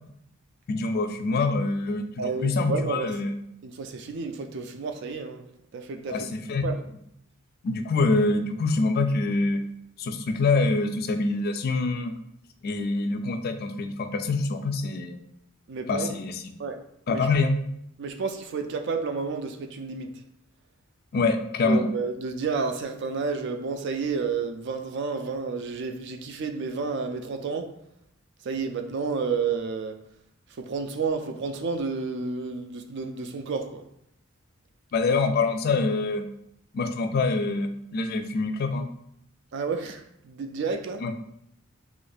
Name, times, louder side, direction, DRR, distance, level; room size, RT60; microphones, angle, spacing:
voice 1, 0.7-3.3 6.1-6.6 7.6-9.6 10.0-12.1 12.6-15.1 15.9-16.4 17.1-17.6 21.1-21.9 34.9-36.3 36.7-38.9 41.0-41.1, left 3 dB, 45° left, 0.3 m, -25 dB
voice 2, 2.2-3.2 3.6-5.4 5.7-6.3 6.6-6.8 15.7-16.1 16.6-16.8 17.1-17.3 18.0-20.1 21.6-27.7 28.4-30.0 30.6-33.9 39.5-41.0, right 4 dB, 55° right, 0.4 m, -31 dB
2.9 x 2.5 x 4.0 m
head